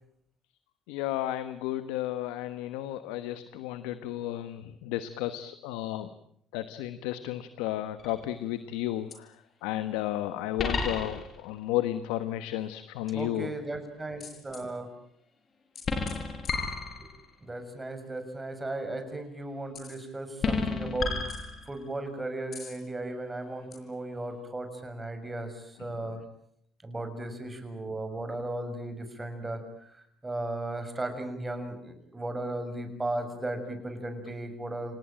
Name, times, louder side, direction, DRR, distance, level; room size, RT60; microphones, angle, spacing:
voice 1, 0.9-6.1 6.5-13.5 25.8-25.9, left 13 dB, 90° left, 12 dB, 1.2 m, -33 dB
sound 1, 8.0-8.4 9.1-9.2 10.6-11.5 14.2-14.6 15.8-17.3 19.8-20.0 20.4-22.0 22.5-22.8 23.7-23.8, left 4 dB, 45° left, 5.5 m, -32 dB
voice 2, 13.1-14.9 17.4-26.2 26.8-29.6 30.2-34.9, right 2 dB, 15° right, 7 dB, 6.8 m, -36 dB
28.5 x 18.5 x 9.0 m, 0.69 s
supercardioid pair, 85°, 0 cm